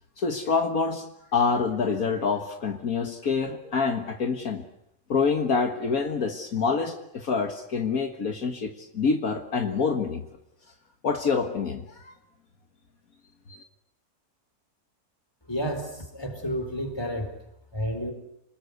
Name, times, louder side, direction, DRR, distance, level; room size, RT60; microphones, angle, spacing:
voice 1, 0.2-1.1 1.3-4.6 5.1-10.2 11.0-12.1 13.5-13.6, left 5 dB, 65° left, 5 dB, 2.0 m, -26 dB
voice 2, 15.5-17.3 17.7-18.1, equal, 15° left, 5 dB, 4.3 m, -30 dB
28.0 x 20.0 x 8.1 m, 0.79 s
omnidirectional pair, 1.6 m